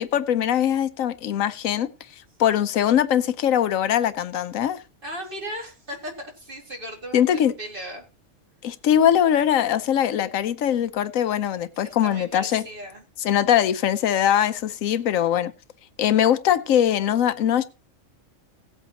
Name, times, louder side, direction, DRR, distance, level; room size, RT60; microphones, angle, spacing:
voice 1, 0.0-1.9 2.4-4.8 7.1-7.5 8.6-12.6 13.2-15.5 16.0-17.6, left 10 dB, 80° left, 1.1 m, -21 dB
voice 2, 5.0-8.0 11.7-13.0, equal, 40° right, 2.3 m, -37 dB
17.5 x 8.1 x 2.9 m
omnidirectional pair, 1.4 m